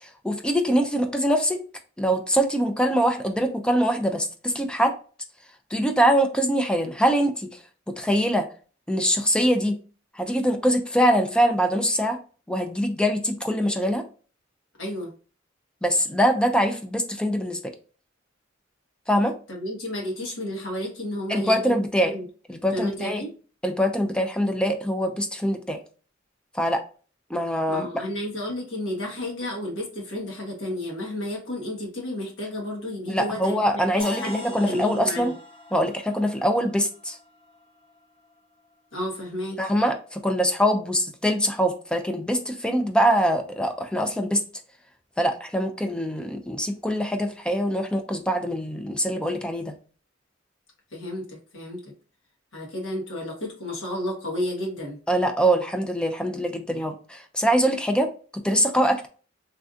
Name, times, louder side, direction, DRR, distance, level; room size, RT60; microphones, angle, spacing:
voice 1, 0.0-1.6 2.0-4.9 5.7-7.5 7.9-8.5 8.9-9.8 10.2-12.2 12.5-14.0 15.8-17.7 19.1-19.3 21.3-22.1 22.5-23.2 23.6-25.8 26.5-26.8 27.3-27.9 33.1-35.3 35.7-37.2 39.6-44.4 45.2-49.7 55.1-59.1, equal, 5° left, 5 dB, 0.4 m, -23 dB
voice 2, 14.8-15.1 19.5-22.2 22.7-23.3 27.7-33.6 33.9-35.3 38.9-39.6 50.9-51.9 52.5-55.0, left 1 dB, 75° left, -2 dB, 1.3 m, -32 dB
sound 1, 34.0-37.9, left 1 dB, 30° left, 0.9 m, -41 dB
3.3 x 2.6 x 2.4 m, 0.38 s
head